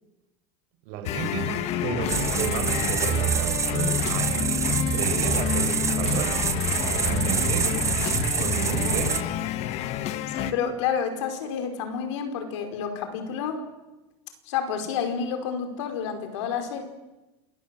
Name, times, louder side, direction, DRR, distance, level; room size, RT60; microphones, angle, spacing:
voice 1, 0.8-6.5 6.8-7.7 8.3-9.3, right 7 dB, 65° right, 5 dB, 5.6 m, -32 dB
sound 1, 1.1-10.5, left 10 dB, 45° left, 1.4 m, -29 dB
sound 2, 2.1-9.2, right 7 dB, 20° right, 1.1 m, -26 dB
voice 2, 10.2-13.6 14.5-16.8, left 7 dB, 85° left, 6 dB, 5.0 m, -29 dB
28.0 x 20.0 x 7.8 m, 1.1 s
supercardioid pair, 145°, 15 cm